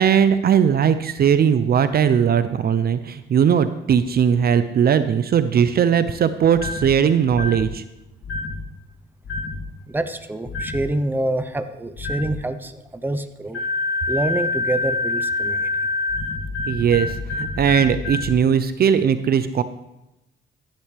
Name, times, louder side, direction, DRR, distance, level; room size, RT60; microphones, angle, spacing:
voice 1, 0.0-7.8 16.7-19.6, right 8 dB, 50° right, 12 dB, 0.6 m, -19 dB
sound 1, 6.5-6.9 7.3-7.7 8.2-8.6 9.2-9.6 10.5-10.8 12.0-12.3 13.5-18.3, left 3 dB, 70° left, 2.9 m, -26 dB
voice 2, 9.9-13.6 14.1-15.9, right 1 dB, 10° right, 9 dB, 0.9 m, -26 dB
15.0 x 10.5 x 3.4 m, 0.92 s
cardioid pair, 90°, 20 cm